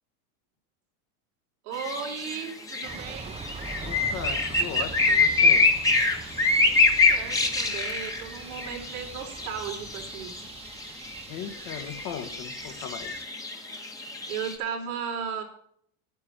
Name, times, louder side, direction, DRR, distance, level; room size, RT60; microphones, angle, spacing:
voice 1, 1.6-3.3 6.6-10.3 14.3-15.4, right 7 dB, 90° right, 0 dB, 4.1 m, -35 dB
sound 1, 1.7-14.5, left 3 dB, 10° left, 1.5 m, -25 dB
sound 2, 2.8-13.2, right 4 dB, 15° right, 0.9 m, -42 dB
voice 2, 3.8-5.7 11.3-13.3, left 9 dB, 45° left, 7 dB, 1.7 m, -38 dB
11.0 x 9.7 x 6.1 m, 0.64 s
supercardioid pair, 155°, 42 cm